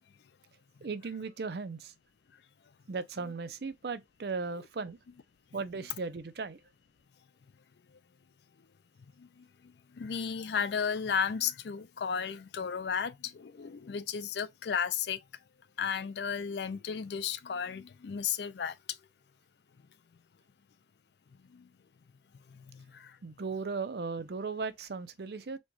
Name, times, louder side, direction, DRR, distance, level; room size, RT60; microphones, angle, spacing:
voice 1, 0.8-1.9 2.9-5.0 5.5-6.6 23.2-25.6, right 4 dB, 60° right, 0.5 m, -37 dB
voice 2, 9.2-15.2 15.8-19.0 21.5-21.7 22.5-23.2, left 7 dB, 70° left, 0.4 m, -34 dB
4.2 x 2.2 x 3.0 m
head